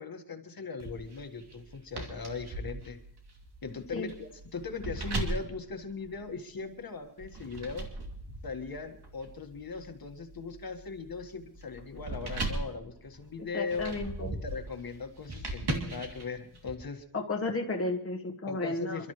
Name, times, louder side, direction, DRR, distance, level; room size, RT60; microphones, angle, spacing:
voice 1, 0.0-3.0 3.6-7.9 8.4-13.9 14.3-17.0 18.4-19.1, left 4 dB, 60° left, 5 dB, 1.6 m, -39 dB
sound 1, 0.8-6.6 7.2-16.7, right 2 dB, 75° right, 2.8 m, -39 dB
voice 2, 13.5-14.3 17.1-19.0, left 2 dB, 35° left, 1 dB, 1.3 m, -33 dB
28.5 x 12.5 x 3.1 m, 0.66 s
wide cardioid pair, 150°, 39 cm